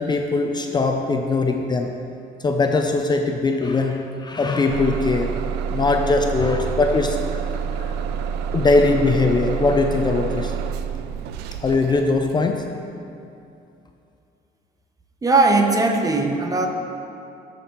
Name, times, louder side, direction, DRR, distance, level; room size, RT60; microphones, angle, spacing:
voice 1, 0.0-2.0 2.4-5.3 5.7-7.4 8.5-10.5 11.6-12.7, left 3 dB, 25° left, 3 dB, 0.5 m, -20 dB
Bus / Engine starting, 4.7-12.5, right 7 dB, 75° right, 0.4 m, -28 dB
voice 2, 15.2-16.7, right 3 dB, 20° right, 4 dB, 0.7 m, -18 dB
13.5 x 5.2 x 3.0 m, 2.6 s
cardioid pair, 110°, 17 cm